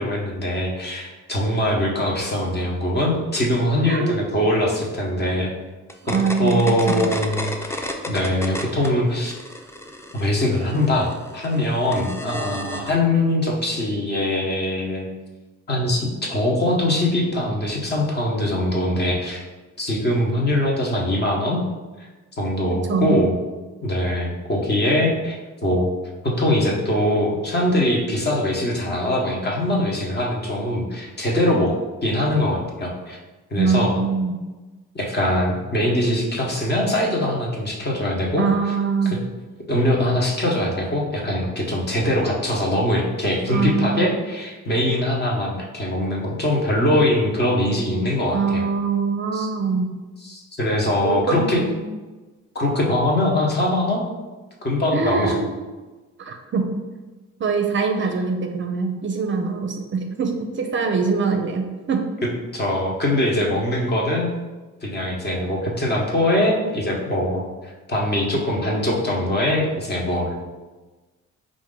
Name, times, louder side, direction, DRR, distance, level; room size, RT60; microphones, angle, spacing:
voice 1, 0.0-5.5 6.4-9.3 10.1-15.1 15.7-19.4 19.8-21.6 22.4-23.3 23.8-25.9 26.2-31.7 32.0-33.2 33.5-33.9 34.9-38.7 39.7-48.7 49.3-49.5 50.2-51.6 52.5-54.1 54.6-55.3 62.5-64.3 64.8-70.3, left 1 dB, 35° left, -2 dB, 1.1 m, -22 dB
voice 2, 3.8-4.3 6.0-7.0 22.9-23.3 33.6-34.4 38.4-39.3 43.5-44.1 48.3-49.9 51.0-51.8 54.9-55.5 56.2-56.8 57.4-62.1, right 5 dB, 40° right, 4 dB, 0.5 m, -23 dB
sound 1, 5.9-8.9 9.2-12.9, left 1 dB, 10° left, 0.4 m, -32 dB
4.5 x 2.6 x 3.8 m, 1.2 s
cardioid pair, 90°, 30 cm